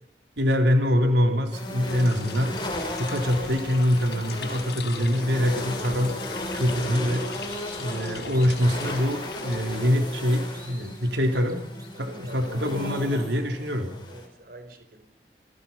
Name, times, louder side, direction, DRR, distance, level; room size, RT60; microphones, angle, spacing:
voice 1, 0.4-2.5 3.0-6.1 6.5-7.3 7.8-11.6 12.0-13.9, equal, 85° right, 4 dB, 3.7 m, -24 dB
sound 1, 1.5-14.3, left 1 dB, 25° left, 6.8 m, -36 dB
sound 2, 1.8-10.1, left 4 dB, 70° left, 5.7 m, -40 dB
sound 3, 7.1-8.9 9.3-9.4 9.8-13.4, right 1 dB, 20° right, 6.1 m, -52 dB
voice 2, 11.9-12.5 14.1-15.0, right 1 dB, 55° right, 8 dB, 4.3 m, -47 dB
28.5 x 21.5 x 5.7 m, 0.64 s
head